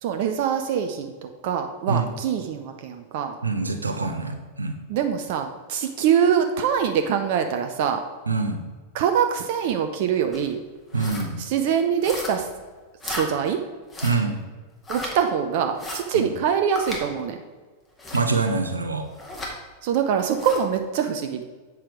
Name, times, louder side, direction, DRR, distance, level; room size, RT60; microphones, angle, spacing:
voice 1, 0.0-3.4 4.9-8.0 8.9-10.6 11.4-12.5 13.0-13.6 14.9-17.4 19.8-21.4, right 8 dB, 50° right, 6 dB, 0.6 m, -24 dB
voice 2, 3.4-4.8 8.3-8.6 10.9-11.4 14.0-14.4 16.1-16.2 18.1-19.1, right 4 dB, 80° right, 6 dB, 0.8 m, -25 dB
sound 1, 10.3-10.5 10.9-11.3 12.0-12.5 13.0-13.3 13.9-14.2 14.8-15.1 15.8-16.0 16.8-17.0 18.0-18.3 19.2-19.5 20.3-20.6, left 1 dB, 15° left, 1.9 m, -34 dB
8.3 x 5.9 x 4.8 m, 1.4 s
figure-of-eight pair, 90°, 0 cm